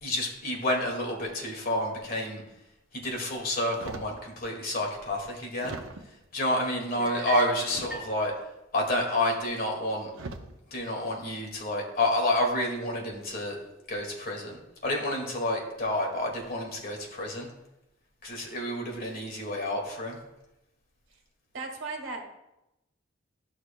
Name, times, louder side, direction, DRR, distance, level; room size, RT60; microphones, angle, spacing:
voice 1, 0.0-2.4 2.9-5.8 6.3-8.3 8.7-10.1 10.7-13.6 13.9-17.5 18.2-20.2, left 1 dB, 50° left, 0 dB, 1.9 m, -29 dB
sound 1, 3.7-4.2 4.9-5.0 5.6-6.3 7.6-8.4 9.5-9.7 10.1-10.6 11.2-11.5, right 3 dB, 90° right, 0.7 m, -41 dB
voice 2, 6.9-7.3 21.1-21.2 21.5-22.2, right 3 dB, 70° right, 2 dB, 1.6 m, -37 dB
sound 2, 7.0-8.2, right 4 dB, 5° right, 1.6 m, -38 dB
13.5 x 6.2 x 2.2 m, 0.92 s
head